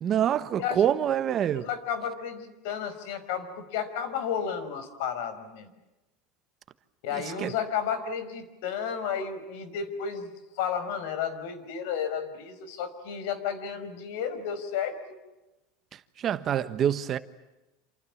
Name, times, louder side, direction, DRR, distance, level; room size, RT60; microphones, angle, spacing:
voice 1, 0.0-1.7 7.4-7.5 16.2-17.2, right 10 dB, 35° right, 1.2 m, -26 dB
voice 2, 0.6-0.9 1.5-5.7 7.0-14.9, left 7 dB, 70° left, 5.3 m, -32 dB
28.5 x 28.0 x 7.3 m
supercardioid pair, 145°, 0 cm